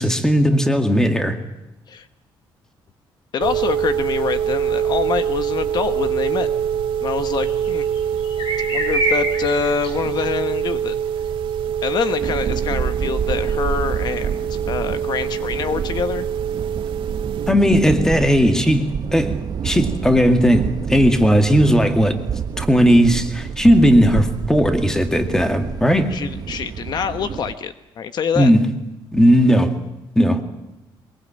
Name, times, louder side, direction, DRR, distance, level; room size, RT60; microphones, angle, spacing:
voice 1, 0.0-1.4 17.5-19.3 19.6-22.1 22.6-26.1 28.4-28.7 29.1-29.7 30.2-30.4, equal, 5° left, 7 dB, 2.1 m, -16 dB
voice 2, 3.3-6.5 7.0-7.9 8.7-10.9 11.8-16.3 26.1-28.5, left 7 dB, 50° left, 10 dB, 1.1 m, -25 dB
sound 1, 3.4-17.5, right 8 dB, 70° right, 1.8 m, -24 dB
sound 2, 7.4-7.7 8.0-9.9 10.2-10.3, right 1 dB, 75° left, 7.8 m, -24 dB
sound 3, 12.2-27.5, right 7 dB, 45° right, 0.9 m, -28 dB
22.5 x 22.0 x 8.8 m, 0.97 s
cardioid pair, 145°, 9 cm